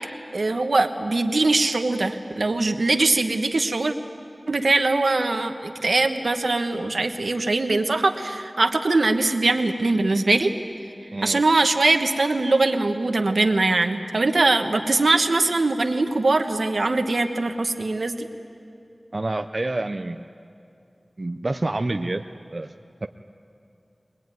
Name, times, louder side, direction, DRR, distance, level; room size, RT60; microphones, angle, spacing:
voice 1, 0.3-3.9 4.5-10.5 11.2-18.3, right 2 dB, 80° right, 6 dB, 1.3 m, -22 dB
voice 2, 11.1-11.4 19.1-20.2 21.2-22.2 22.5-22.7 23.0-23.1, right 2 dB, 50° right, 6 dB, 0.6 m, -27 dB
23.0 x 20.0 x 9.3 m, 2.5 s
wide cardioid pair, 60°, 0 cm